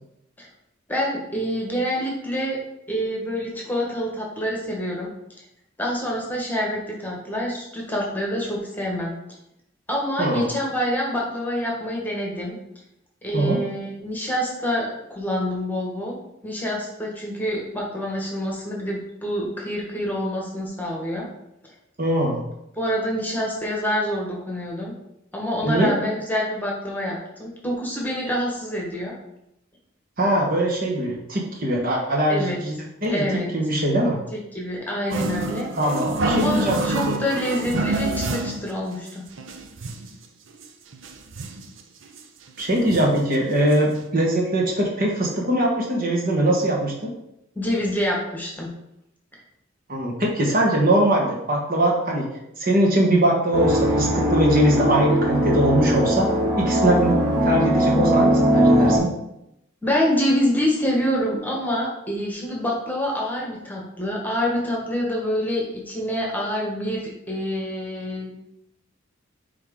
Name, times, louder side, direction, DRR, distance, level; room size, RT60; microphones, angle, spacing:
voice 1, 0.9-2.6 2.9-5.1 5.8-9.1 9.9-12.6 13.2-16.2 16.4-21.3 22.8-24.9 25.3-29.1 32.3-32.6 33.0-33.5 34.3-35.7 36.3-39.2 47.5-48.7 59.8-67.0 67.3-68.5, equal, 10° left, -3 dB, 1.4 m, -26 dB
voice 2, 10.2-10.5 13.3-13.6 22.0-22.4 25.6-25.9 30.2-33.2 33.5-34.2 35.7-36.8 37.1-37.2 42.6-47.1 49.9-52.3 52.6-56.3 56.6-59.1, right 1 dB, 45° right, -1 dB, 1.2 m, -21 dB
sound 1, 35.1-38.7 39.1-39.2 39.4-40.1 40.6-40.7 40.9-41.7 42.2-42.3 42.6-43.2 43.7-43.8 44.0-44.1, right 2 dB, 65° right, 0.6 m, -27 dB
sound 2, 53.5-59.0, equal, 10° right, 2.5 m, -20 dB
8.7 x 3.5 x 3.7 m, 0.83 s
head